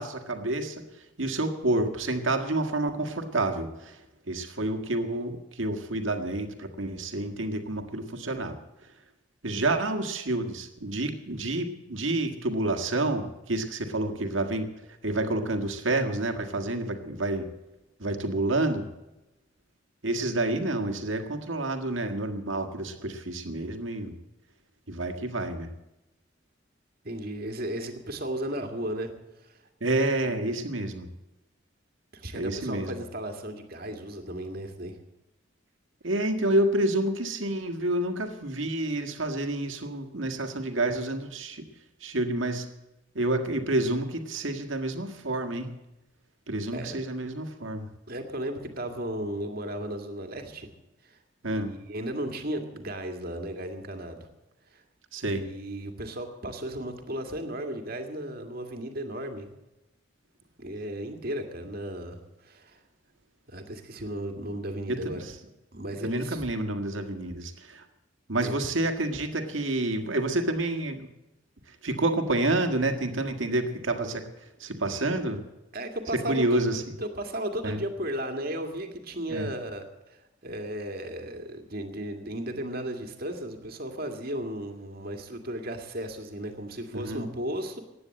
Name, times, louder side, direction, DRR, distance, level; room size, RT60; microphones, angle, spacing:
voice 1, 0.0-8.6 9.4-14.7 15.0-17.5 18.0-18.9 20.0-24.1 24.9-25.7 29.8-31.1 32.3-33.0 36.0-41.7 42.0-42.7 43.2-45.7 46.5-47.9 51.4-51.7 55.1-55.4 64.9-65.3 66.0-67.9 68.3-71.1 71.7-75.4 76.1-76.8 77.6-77.8 79.3-79.5 86.9-87.2, right 2 dB, 75° right, 5 dB, 1.8 m, -29 dB
voice 2, 27.0-29.1 29.4-29.6 30.3-30.5 32.1-35.0 46.7-47.0 48.1-50.7 51.0-51.2 51.4-54.3 54.7-54.8 55.3-59.5 60.6-62.8 63.5-65.3 65.7-66.4 68.4-68.6 75.7-76.6 77.0-87.8, right 1 dB, 50° right, 5 dB, 2.1 m, -35 dB
15.5 x 9.7 x 7.7 m, 0.98 s
head